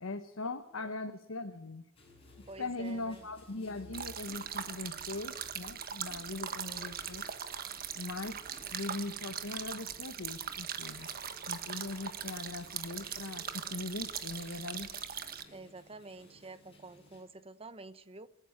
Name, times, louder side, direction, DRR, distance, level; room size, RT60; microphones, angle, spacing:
voice 1, 0.0-1.8 2.4-7.2 7.9-8.4 8.7-11.1 11.5-14.9, left 2 dB, 85° left, 1.1 m, -40 dB
sound 1, 2.0-17.2, left 1 dB, 30° left, 7.9 m, -57 dB
voice 2, 2.5-3.3 6.6-7.0 15.5-18.3, right 2 dB, 30° right, 1.0 m, -49 dB
goat rocks stream, 3.9-15.4, right 8 dB, 50° right, 1.4 m, -41 dB
27.0 x 10.0 x 9.9 m
head